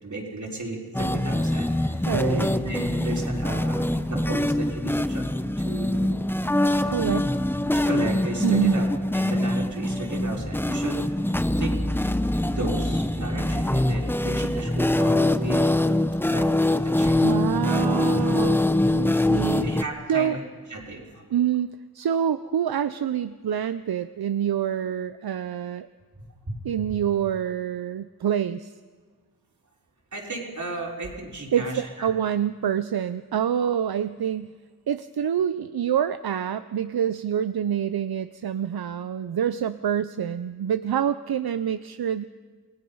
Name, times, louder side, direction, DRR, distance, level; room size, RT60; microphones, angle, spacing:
voice 1, 0.0-5.2 5.6-6.8 7.7-8.9 9.1-15.8 16.3-16.5 16.8-17.2 19.6-20.4 20.7-21.2 26.2-26.6 26.9-27.0 30.1-32.1, right 2 dB, 50° right, -1 dB, 4.3 m, -34 dB
sound 1, 0.9-19.8, left 1 dB, 5° left, 0.8 m, -24 dB
voice 2, 2.1-2.4 6.9-7.3 8.4-8.8 17.2-19.7 20.1-20.4 21.3-25.9 26.6-28.7 31.5-34.5 34.9-42.3, right 9 dB, 80° right, 13 dB, 0.6 m, -26 dB
28.0 x 20.0 x 5.5 m, 1.5 s
wide cardioid pair, 95°, 37 cm